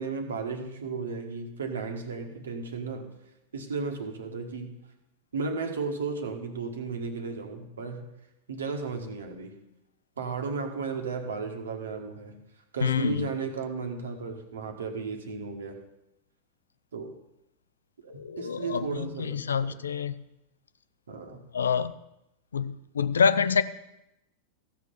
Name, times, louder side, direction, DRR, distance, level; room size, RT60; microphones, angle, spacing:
voice 1, 0.0-3.1 3.5-4.7 5.3-8.1 8.5-9.5 10.2-12.4 12.7-15.8 16.9-17.1 18.0-19.8 21.1-21.4, right 4 dB, 70° right, 5 dB, 1.6 m, -34 dB
voice 2, 12.8-13.3 18.1-20.2 21.5-21.9 22.5-23.6, left 6 dB, 70° left, 15 dB, 0.5 m, -26 dB
15.0 x 5.9 x 6.8 m, 0.89 s
figure-of-eight pair, 90°, 0 cm